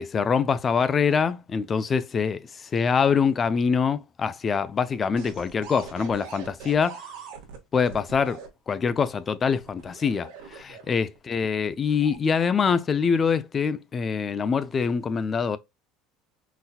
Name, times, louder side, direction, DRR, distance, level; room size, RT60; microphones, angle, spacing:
voice 1, 0.0-2.4 2.7-7.0 7.7-8.4 8.7-15.6, left 6 dB, 20° left, 0.3 m, -24 dB
sound 1, 5.2-8.5 9.5-11.2 11.8-12.2, right 6 dB, 75° right, 1.1 m, -42 dB
3.9 x 2.7 x 2.3 m
cardioid pair, 150°, 0 cm